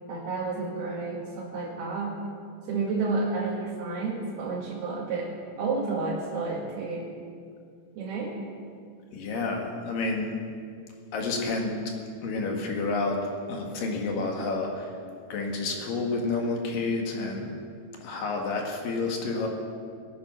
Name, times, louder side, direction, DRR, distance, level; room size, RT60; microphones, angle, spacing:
voice 1, 0.1-2.2 2.7-5.3 5.6-7.0 8.0-8.3, right 3 dB, 85° right, -5 dB, 4.0 m, -30 dB
voice 2, 9.1-10.3 11.1-11.7 12.2-13.2 13.5-14.9 15.3-17.5 18.0-19.5, left 3 dB, 65° left, 1 dB, 3.3 m, -29 dB
21.5 x 9.2 x 6.0 m, 2.3 s
omnidirectional pair, 4.4 m